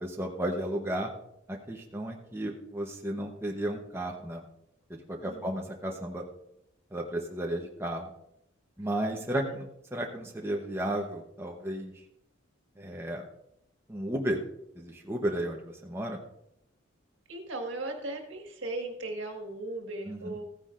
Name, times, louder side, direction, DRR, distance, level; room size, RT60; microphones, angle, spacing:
voice 1, 0.0-1.1 1.5-4.4 4.9-6.2 6.9-8.1 8.8-9.6 9.9-11.9 12.8-13.2 13.9-14.4 14.7-16.2 20.1-20.4, right 1 dB, 10° right, 0 dB, 0.9 m, -33 dB
voice 2, 5.2-5.6 17.3-20.4, right 2 dB, 65° right, 3 dB, 1.7 m, -37 dB
15.0 x 9.7 x 2.5 m, 0.79 s
head